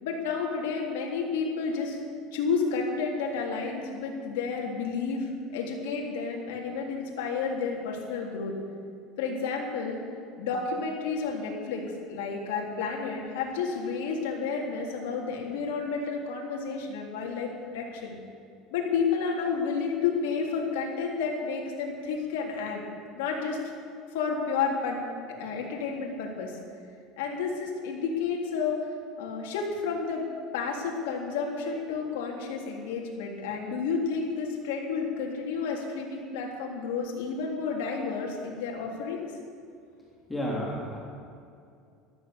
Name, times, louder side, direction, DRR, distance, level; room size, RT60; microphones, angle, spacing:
voice 1, 0.0-2.0 2.3-8.5 9.2-10.0 10.4-18.2 18.7-22.8 23.1-23.6 24.1-26.6 27.2-28.8 29.2-30.2 30.5-39.3, left 5 dB, 90° left, -1 dB, 3.3 m, -31 dB
voice 2, 40.3-41.0, equal, 10° left, -5 dB, 3.3 m, -31 dB
14.0 x 13.0 x 6.9 m, 2.4 s
supercardioid pair, 125°, 0 cm